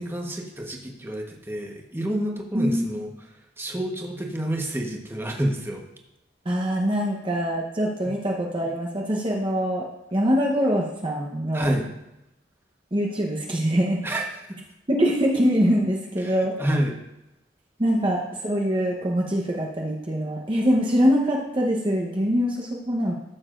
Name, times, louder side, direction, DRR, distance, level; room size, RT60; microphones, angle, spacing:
voice 1, 0.0-3.1 3.6-5.8 11.5-11.9 14.0-14.6 16.2-16.9, right 1 dB, 15° right, 0 dB, 1.2 m, -28 dB
voice 2, 6.4-9.8 10.1-11.7 12.9-14.0 14.9-16.5 17.8-23.1, equal, 30° right, -2 dB, 1.0 m, -23 dB
14.0 x 7.2 x 2.5 m, 0.90 s
head